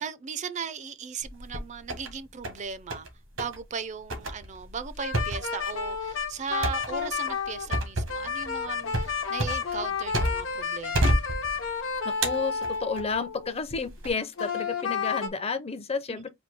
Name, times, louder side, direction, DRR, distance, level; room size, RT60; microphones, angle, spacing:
voice 1, 0.0-3.1 3.4-11.1, right 6 dB, 35° right, 0.4 m, -37 dB
sound 1, 1.2-2.1 2.4-3.1 3.4-3.6 4.1-10.6 10.9-11.8 12.2-13.1 13.7-14.1, right 1 dB, 90° right, 1.6 m, -30 dB
sound 2, 5.0-13.5 14.4-15.3, left 6 dB, 85° left, 1.0 m, -31 dB
voice 2, 12.0-16.3, left 4 dB, 30° left, 0.5 m, -31 dB
4.3 x 2.7 x 4.5 m
head